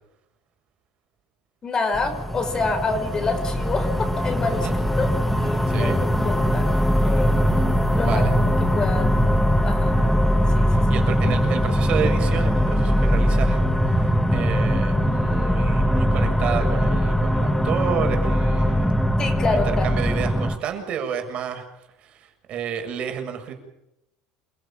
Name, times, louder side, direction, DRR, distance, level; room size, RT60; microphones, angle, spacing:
voice 1, 1.6-6.7 7.0-7.5 7.9-9.1 9.6-10.0 10.5-10.7 19.2-20.1, left 3 dB, 30° left, 7 dB, 5.6 m, -27 dB
sound 1, 1.9-20.6, equal, 5° left, 2.0 m, -21 dB
voice 2, 5.7-6.0 8.0-8.3 10.7-19.0 19.4-21.6 22.0-23.5, right 7 dB, 50° right, 5 dB, 6.9 m, -30 dB
28.0 x 16.5 x 8.9 m, 0.87 s
supercardioid pair, 115°, 3 cm